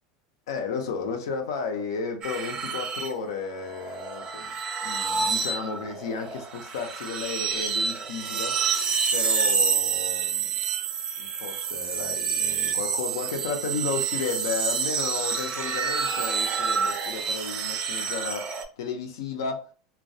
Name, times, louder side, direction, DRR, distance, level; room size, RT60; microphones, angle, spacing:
voice 1, 0.5-4.5 4.8-8.6 9.1-10.5 11.2-18.5 18.8-19.7, left 5 dB, 80° left, 0.5 m, -33 dB
sound 1, 2.2-18.6, right 6 dB, 40° right, 0.4 m, -28 dB
2.2 x 2.1 x 2.6 m
supercardioid pair, 110°, 2 cm